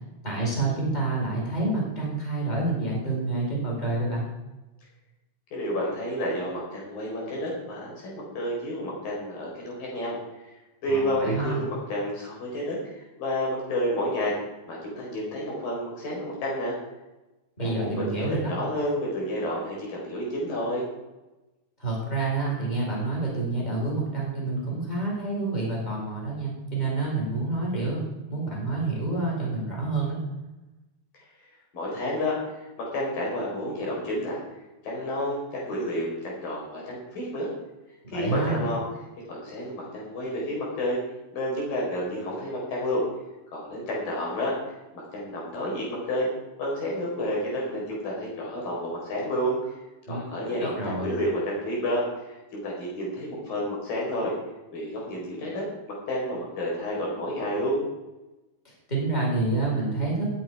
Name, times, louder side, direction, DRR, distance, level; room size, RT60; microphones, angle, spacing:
voice 1, 0.2-4.3 10.9-11.6 17.6-18.5 21.8-28.0 28.3-30.2 38.0-38.6 50.1-51.2 58.6-60.3, right 3 dB, 10° left, -3 dB, 4.5 m, -28 dB
voice 2, 5.5-10.5 10.8-14.3 14.7-16.8 17.6-20.8 31.7-34.4 34.8-37.5 38.1-38.8 39.3-41.0 41.3-43.0 43.5-44.6 44.9-46.3 46.6-49.6 50.1-54.3 54.7-57.8, equal, 80° left, -3 dB, 6.1 m, -30 dB
19.5 x 8.7 x 4.8 m, 1.0 s
omnidirectional pair, 3.9 m